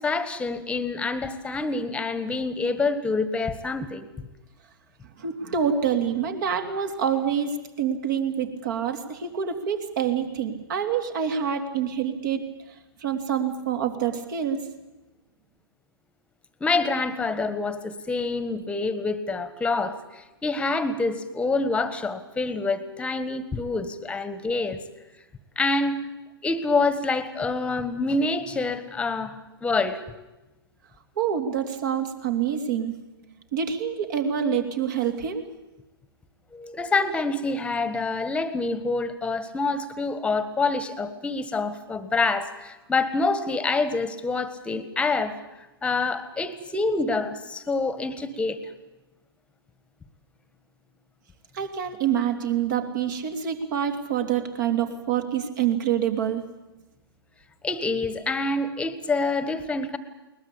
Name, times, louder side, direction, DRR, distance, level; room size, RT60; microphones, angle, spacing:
voice 1, 0.0-4.1 16.6-24.8 25.5-26.0 26.4-30.0 36.5-45.3 45.8-48.6 57.6-60.0, left 3 dB, 10° left, 13 dB, 1.6 m, -26 dB
voice 2, 5.2-12.4 13.0-14.6 31.2-32.9 33.5-35.4 51.5-56.4, right 8 dB, 50° right, 5 dB, 3.1 m, -26 dB
21.5 x 20.0 x 8.6 m, 1.0 s
figure-of-eight pair, 120°, 13 cm